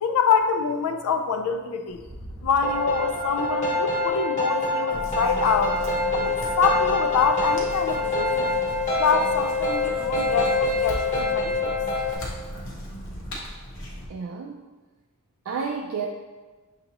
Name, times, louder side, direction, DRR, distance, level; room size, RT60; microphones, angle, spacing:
voice 1, 0.0-2.0 2.4-5.8 6.1-8.5 9.0-11.8, left 5 dB, 85° left, 6 dB, 0.4 m, -25 dB
sound 1, 1.9-5.9, equal, 5° left, 0.6 m, -45 dB
sound 2, 2.6-12.1, left 2 dB, 30° left, 0.9 m, -25 dB
sound 3, 4.9-14.1, equal, 60° left, 1.0 m, -37 dB
voice 2, 14.1-14.6 15.5-16.1, right 5 dB, 65° right, 1 dB, 0.3 m, -30 dB
6.4 x 2.7 x 2.9 m, 1.3 s
head